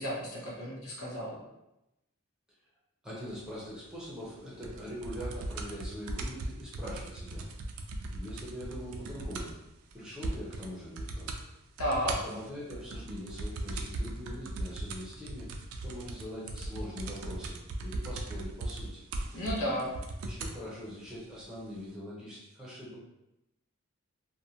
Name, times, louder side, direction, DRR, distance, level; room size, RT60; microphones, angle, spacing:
voice 1, 0.0-1.4 11.8-12.2 19.3-19.9, equal, 75° left, -4 dB, 0.8 m, -33 dB
voice 2, 3.0-7.5 8.1-9.5 9.9-11.4 12.2-15.5 15.8-19.0 20.2-23.0, equal, 5° right, -7 dB, 0.6 m, -42 dB
sound 1, 4.6-9.7 9.9-10.0 10.2-10.7 11.0-11.4 11.8-20.6 21.4-21.5, right 2 dB, 70° right, 0.3 m, -38 dB
2.7 x 2.2 x 2.7 m, 0.93 s
head